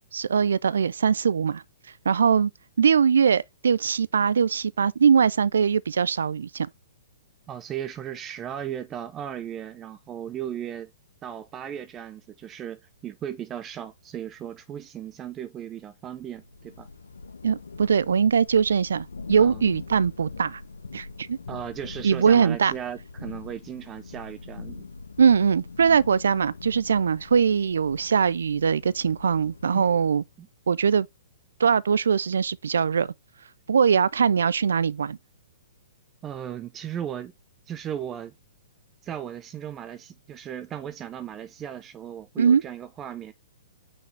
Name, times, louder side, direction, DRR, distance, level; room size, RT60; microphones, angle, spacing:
voice 1, 0.1-1.6 2.1-2.5 2.8-6.7 17.4-20.6 20.9-21.4 22.0-22.7 25.2-30.2 30.7-31.1 31.6-33.1 33.7-35.2 42.4-42.6, right 6 dB, 75° right, 0.4 m, -21 dB
voice 2, 7.5-10.9 11.2-16.9 19.4-19.6 21.5-24.8 29.7-29.8 30.4-30.5 36.2-37.3 37.7-38.3 39.0-43.3, right 10 dB, 25° right, 0.6 m, -36 dB
Thunder / Rain, 16.2-30.3, left 4 dB, 85° left, 0.9 m, -42 dB
6.0 x 5.4 x 3.3 m
hypercardioid pair, 125°, 0 cm